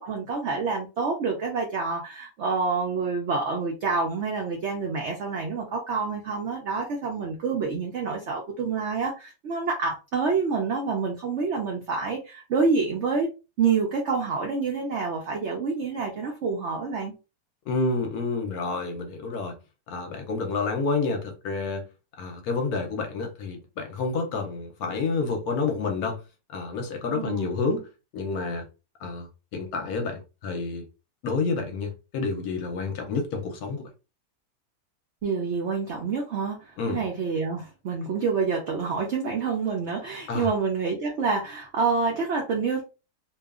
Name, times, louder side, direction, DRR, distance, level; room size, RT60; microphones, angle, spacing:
voice 1, 0.0-13.3 13.6-17.1 27.0-27.5 35.2-42.8, right 4 dB, 85° right, 0.6 m, -27 dB
voice 2, 17.7-19.5 19.9-21.9 22.2-26.2 26.5-27.9 28.1-28.7 29.0-29.3 29.5-30.9 31.2-33.9 36.8-37.0 40.3-40.5, left 4 dB, 70° left, 1.0 m, -29 dB
2.8 x 2.3 x 2.3 m
omnidirectional pair, 1.9 m